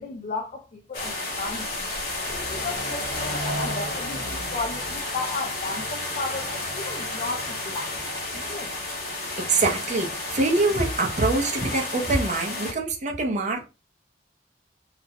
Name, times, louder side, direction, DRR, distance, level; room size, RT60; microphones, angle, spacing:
voice 1, 0.0-1.7 2.3-8.7, left 3 dB, 40° left, 0.4 m, -34 dB
sound 1, 0.9-12.7, left 2 dB, 55° left, 0.9 m, -31 dB
voice 2, 9.4-13.6, right 2 dB, 40° right, 0.6 m, -24 dB
2.4 x 2.0 x 2.6 m
head